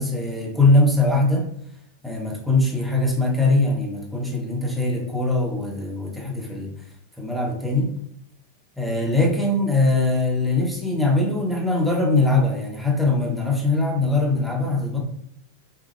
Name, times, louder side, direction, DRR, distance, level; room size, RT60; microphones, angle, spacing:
voice 1, 0.0-1.5 2.0-6.7 7.2-7.9 8.8-15.0, left 2 dB, ahead, -1 dB, 1.1 m, -21 dB
5.8 x 2.3 x 3.1 m, 0.77 s
figure-of-eight pair, 90°, 0 cm